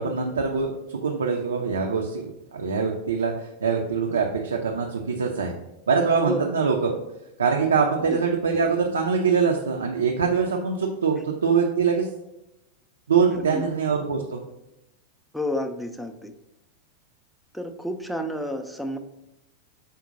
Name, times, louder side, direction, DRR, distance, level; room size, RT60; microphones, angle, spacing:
voice 1, 0.0-5.5 5.9-6.9 7.4-12.1 13.1-14.4, right 5 dB, 70° right, 1 dB, 0.4 m, -23 dB
voice 2, 13.3-13.7 15.3-16.3 17.5-19.0, equal, ahead, 7 dB, 0.4 m, -30 dB
5.0 x 2.1 x 3.9 m, 0.91 s
figure-of-eight pair, 90°, 0 cm